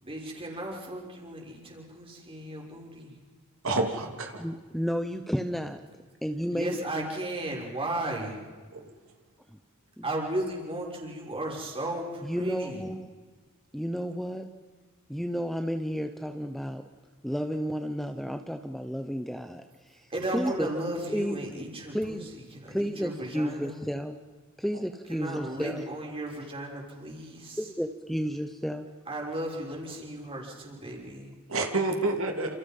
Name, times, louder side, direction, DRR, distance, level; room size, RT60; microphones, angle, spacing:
voice 1, 0.0-3.2 6.5-8.4 10.0-12.8 20.1-22.2 22.5-23.8 25.1-27.6 29.1-31.3, right 1 dB, 25° right, -1 dB, 6.2 m, -35 dB
voice 2, 3.6-4.5 8.7-8.8 31.5-32.5, right 2 dB, 65° right, 3 dB, 3.1 m, -28 dB
voice 3, 4.4-5.8 6.2-6.8 10.0-10.1 12.2-13.1 13.7-14.5 15.1-16.8 17.2-20.0 20.3-20.7 21.1-21.4 21.9-22.3 22.7-24.2 24.6-25.8 27.6-28.9, equal, ahead, 7 dB, 0.9 m, -32 dB
29.0 x 28.5 x 5.6 m, 1.5 s
head